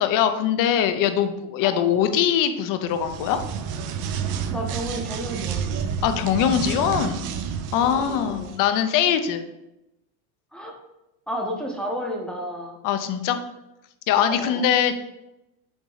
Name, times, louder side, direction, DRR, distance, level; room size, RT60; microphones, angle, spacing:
voice 1, 0.0-3.4 6.0-7.3 7.7-9.4 12.8-13.4 14.1-14.9, left 9 dB, 45° left, 9 dB, 0.7 m, -22 dB
voice 2, 1.6-1.9 4.5-5.7 7.7-8.5 10.5-10.7 11.3-12.8 14.2-14.7, equal, ahead, 0 dB, 0.8 m, -32 dB
sound 1, 2.9-8.6, right 7 dB, 40° right, 0.6 m, -30 dB
6.1 x 4.0 x 3.9 m, 0.91 s
supercardioid pair, 135°, 47 cm